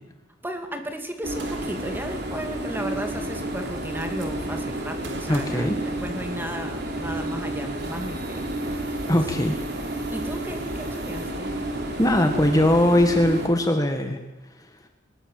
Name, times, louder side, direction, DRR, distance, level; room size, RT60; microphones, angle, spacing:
voice 1, 0.4-9.0 9.4-9.8 10.1-11.6, right 1 dB, 10° right, 5 dB, 2.6 m, -35 dB
sound 1, 1.2-13.5, right 1 dB, 60° right, 4.2 m, -31 dB
Gunshot gunfire, 1.4-2.0 3.2-3.3 3.6-4.3 5.0-6.5, right 4 dB, 85° right, 3.9 m, -44 dB
voice 2, 5.3-5.8 9.1-9.5 12.0-14.2, left 1 dB, 20° left, 5 dB, 1.6 m, -20 dB
21.0 x 20.0 x 7.8 m, 1.0 s
head